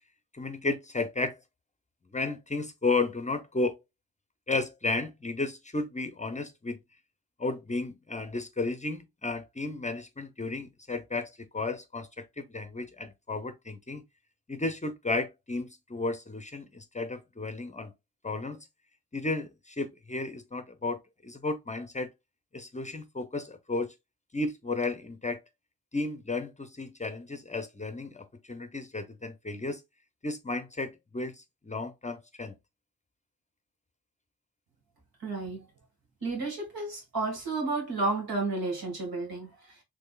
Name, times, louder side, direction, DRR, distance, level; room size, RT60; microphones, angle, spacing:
voice 1, 0.3-1.4 2.1-3.8 4.5-6.8 7.4-14.0 14.5-17.9 18.2-18.6 19.1-22.1 22.5-23.9 24.3-25.4 25.9-29.8 30.2-32.6, left 3 dB, 20° left, 0.6 m, -33 dB
voice 2, 35.2-35.7 36.2-39.8, right 3 dB, 75° right, 1.9 m, -32 dB
3.5 x 3.3 x 2.3 m
cardioid pair, 55°, 36 cm